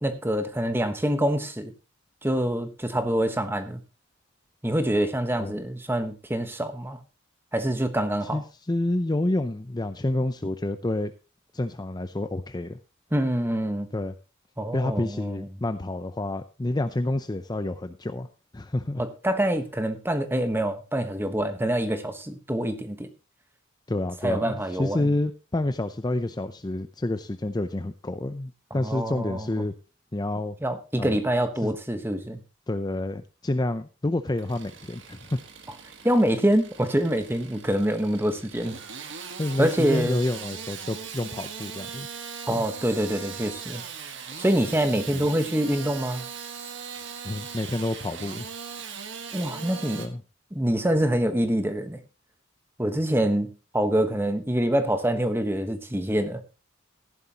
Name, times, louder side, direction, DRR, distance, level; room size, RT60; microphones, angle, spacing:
voice 1, 0.0-1.7 2.2-3.8 4.6-7.0 7.5-8.4 13.1-13.9 14.6-15.5 19.0-23.1 24.2-25.1 28.8-29.6 30.6-32.4 36.0-38.8 39.6-40.2 42.5-43.8 44.4-46.2 49.3-50.1 50.5-52.0 52.8-56.4, right 1 dB, 10° right, 9 dB, 1.2 m, -25 dB
voice 2, 8.3-11.1 11.5-12.8 13.9-14.1 14.7-18.3 18.5-19.0 23.9-29.7 30.1-30.6 31.0-31.2 31.6-31.8 32.7-35.4 39.4-42.1 42.5-42.6 45.1-45.2 47.2-48.5 50.0-50.2, left 1 dB, 20° left, 10 dB, 0.5 m, -28 dB
Engine starting / Sawing, 34.3-50.1, right 6 dB, 60° right, 1.5 m, -39 dB
15.0 x 11.0 x 2.9 m, 0.31 s
head